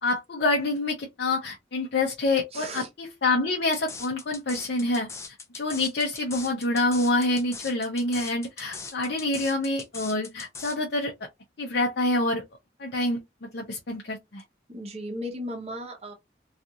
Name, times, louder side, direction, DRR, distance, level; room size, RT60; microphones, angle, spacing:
voice 1, 0.0-5.1 5.5-11.1 11.6-12.4 12.8-13.2 13.5-14.4, left 2 dB, 70° left, 0.6 m, -26 dB
voice 2, 2.5-2.9 14.7-16.1, equal, 35° right, 0.8 m, -35 dB
sound 1, 3.7-10.8, left 4 dB, 15° left, 0.3 m, -40 dB
2.4 x 2.4 x 2.7 m
head